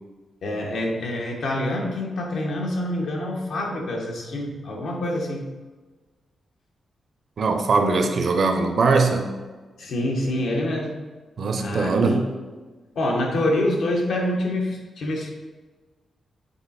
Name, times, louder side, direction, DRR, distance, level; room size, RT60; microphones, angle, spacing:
voice 1, 0.4-5.5 9.8-11.0 11.6-12.2 12.9-15.3, left 1 dB, 75° left, -1 dB, 1.3 m, -26 dB
voice 2, 7.4-9.4 11.4-12.2, right 3 dB, 50° right, 6 dB, 0.7 m, -21 dB
7.1 x 4.0 x 4.2 m, 1.3 s
wide cardioid pair, 145°, 0 cm